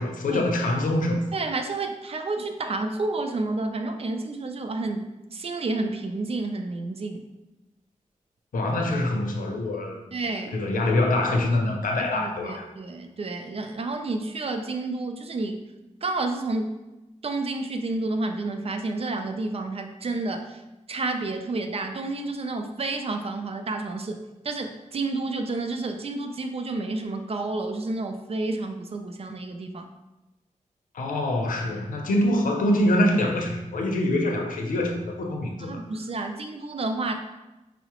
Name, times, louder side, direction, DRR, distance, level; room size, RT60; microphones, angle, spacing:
voice 1, 0.0-1.2 8.5-10.2 10.5-12.7 30.9-35.8, left 1 dB, 85° left, 2 dB, 0.6 m, -25 dB
voice 2, 1.3-7.2 10.1-10.5 12.1-15.6 16.0-16.8 17.2-20.6 20.9-29.9 35.6-37.1, right 2 dB, 45° right, 6 dB, 0.4 m, -30 dB
5.5 x 2.0 x 2.9 m, 1.0 s
wide cardioid pair, 85°, 14 cm